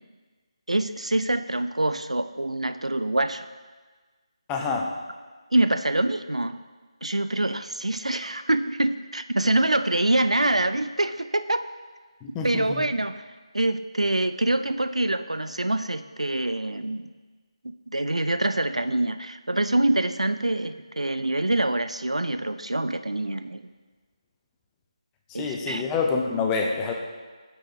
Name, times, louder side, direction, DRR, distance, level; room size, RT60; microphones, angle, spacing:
voice 1, 0.7-3.5 5.5-6.6 7.0-11.7 12.4-13.2 13.5-17.1 17.6-23.6 25.3-25.8, right 1 dB, 85° right, 11 dB, 0.3 m, -25 dB
voice 2, 4.5-4.9 12.2-12.8 25.3-26.9, left 4 dB, 10° left, 1 dB, 0.3 m, -27 dB
8.1 x 5.5 x 2.6 m, 1.4 s
figure-of-eight pair, 160°, 3 cm